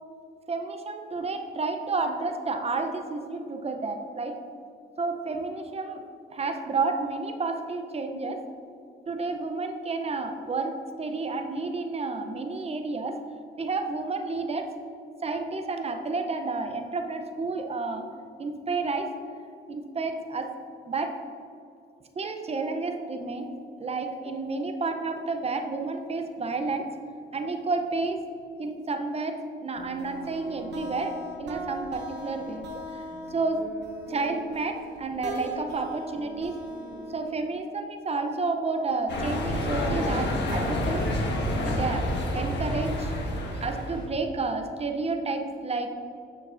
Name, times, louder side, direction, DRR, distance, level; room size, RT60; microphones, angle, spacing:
voice 1, 0.5-4.4 5.0-6.0 6.3-8.4 9.1-13.2 13.6-14.7 15.2-18.1 18.4-19.1 19.7-20.5 20.9-21.2 22.2-26.9 27.3-28.2 28.6-33.0 33.3-33.7 34.1-36.6 37.1-41.1 41.6-42.1 42.3-43.1 43.6-45.9, right 3 dB, 30° right, 5 dB, 0.6 m, -30 dB
sound 1, 29.8-37.4, right 1 dB, 60° right, 1.0 m, -40 dB
sound 2, 39.1-44.0, left 1 dB, 60° left, 1.4 m, -28 dB
8.6 x 6.4 x 2.6 m, 2.5 s
cardioid pair, 90°, 20 cm